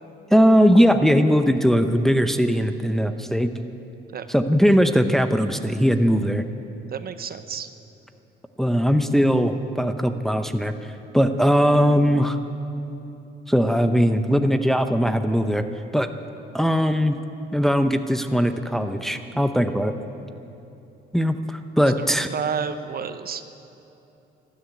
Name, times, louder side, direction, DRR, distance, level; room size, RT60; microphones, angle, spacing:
voice 1, 0.3-3.5 4.3-6.4 8.6-10.7 11.1-12.4 13.5-15.6 15.9-16.1 16.5-17.2 17.5-19.9 21.1-22.3, equal, ahead, 8 dB, 0.8 m, -19 dB
voice 2, 6.9-7.7 22.3-23.5, right 6 dB, 50° right, 11 dB, 0.8 m, -30 dB
13.0 x 11.5 x 9.4 m, 2.9 s
cardioid pair, 90°, 20 cm